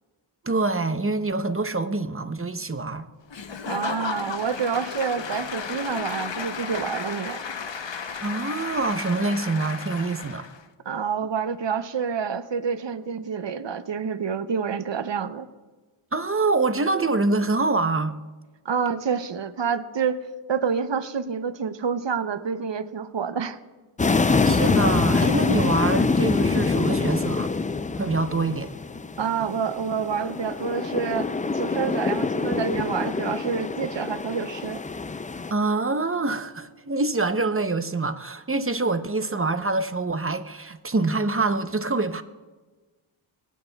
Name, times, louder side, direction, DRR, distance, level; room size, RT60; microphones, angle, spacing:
voice 1, 0.4-3.1 8.2-10.5 16.1-18.2 24.4-27.5 28.0-28.7 35.5-42.2, right 3 dB, 25° right, 0.7 m, -25 dB
Applause / Crowd, 3.3-10.6, left 6 dB, 60° left, 0.8 m, -34 dB
voice 2, 3.7-7.4 10.9-15.5 18.6-20.2 20.5-23.6 29.2-34.8, right 6 dB, 60° right, 0.7 m, -28 dB
sound 1, 24.0-35.5, left 4 dB, 20° left, 0.3 m, -25 dB
24.0 x 9.4 x 2.3 m
wide cardioid pair, 55°, 50 cm